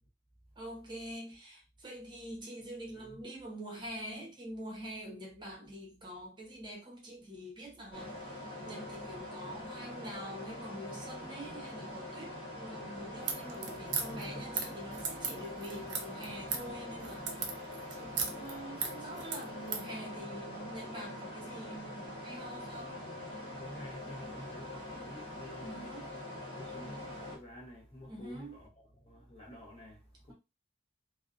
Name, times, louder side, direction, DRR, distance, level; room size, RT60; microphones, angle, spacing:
voice 1, 0.6-23.0 25.6-26.1 28.1-28.6, right 1 dB, 25° right, 0.7 m, -45 dB
sound 1, 7.9-27.4, left 1 dB, 65° left, 1.0 m, -44 dB
sound 2, 13.2-19.9, right 6 dB, 60° right, 0.5 m, -37 dB
voice 2, 13.7-14.7 14.9-15.7 16.2-16.9 23.5-25.8 26.5-30.3, left 1 dB, 30° left, 0.7 m, -51 dB
2.5 x 2.1 x 2.4 m
head